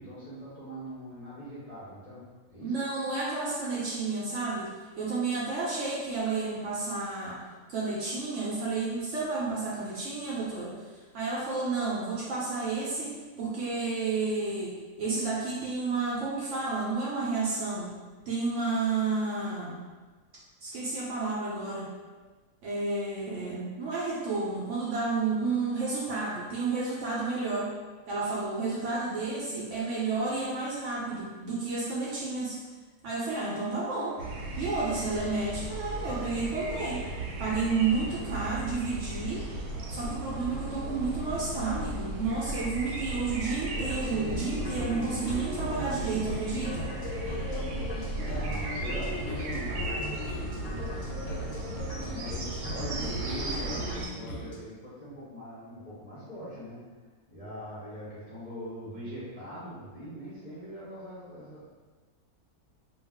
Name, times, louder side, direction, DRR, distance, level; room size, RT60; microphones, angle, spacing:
voice 1, 0.0-2.2 2.5-2.8 48.2-51.1 51.9-56.8 57.3-61.6, equal, 40° left, -11 dB, 0.5 m, -42 dB
voice 2, 2.6-7.4 7.7-10.8 11.1-17.9 18.3-19.8 20.6-21.9 22.6-27.7 28.1-32.6 33.0-34.2 34.6-37.0 37.4-39.4 39.9-46.9, right 3 dB, 65° right, -6 dB, 0.8 m, -31 dB
sound 1, 34.2-54.1, right 2 dB, 90° right, 1.1 m, -36 dB
sound 2, 43.7-54.6, left 2 dB, 70° left, 0.9 m, -38 dB
2.4 x 2.3 x 3.4 m, 1.3 s
omnidirectional pair, 1.6 m